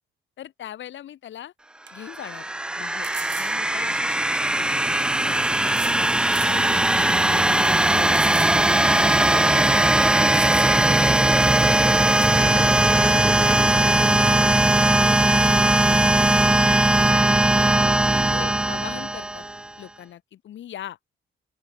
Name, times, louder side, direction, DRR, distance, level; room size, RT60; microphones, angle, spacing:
voice 1, 0.4-1.5 1.9-3.1 3.4-6.0 6.5-8.2 8.8-10.1 12.3-16.3 17.1-19.4 19.8-21.0, left 11 dB, 70° left, 2.9 m, -40 dB
sound 1, 1.2-1.3 1.9-2.0 3.0-3.6 4.7-4.8 5.7-6.0 6.3-6.6 7.1-7.2 8.1-8.6 8.9-9.0 9.9-10.0 10.3-11.0 12.2-12.4, right 10 dB, 65° right, 2.5 m, -37 dB
sound 2, 2.0-19.7, right 1 dB, 5° right, 0.3 m, -19 dB
open air
cardioid pair, 90°, 20 cm